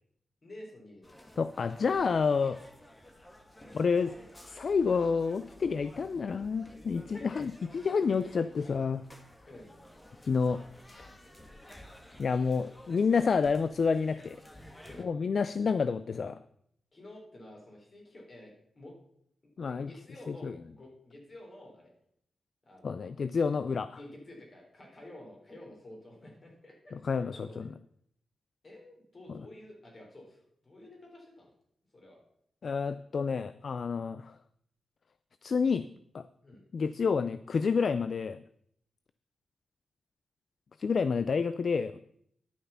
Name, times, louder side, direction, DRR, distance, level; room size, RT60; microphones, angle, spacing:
voice 1, 0.4-1.2 1.8-2.0 3.6-3.8 7.0-7.4 9.5-9.7 14.8-15.1 16.9-18.9 19.6-21.9 22.6-23.1 23.9-27.7 28.6-31.5 31.9-32.2 36.4-36.6, left 1 dB, 40° left, 0 dB, 4.0 m, -50 dB
sound 1, 1.0-15.1, left 1 dB, 15° left, 1.4 m, -53 dB
voice 2, 1.4-2.6 3.7-4.1 4.5-9.0 10.3-10.6 10.9-11.1 12.2-14.4 15.0-16.4 19.6-19.9 20.3-20.6 22.8-24.0 26.9-27.7 32.6-34.3 35.4-35.9 36.1-36.3 36.7-38.4 40.8-42.0, left 5 dB, 60° left, 13 dB, 0.4 m, -29 dB
11.0 x 6.7 x 5.8 m, 0.69 s
wide cardioid pair, 100°, 0 cm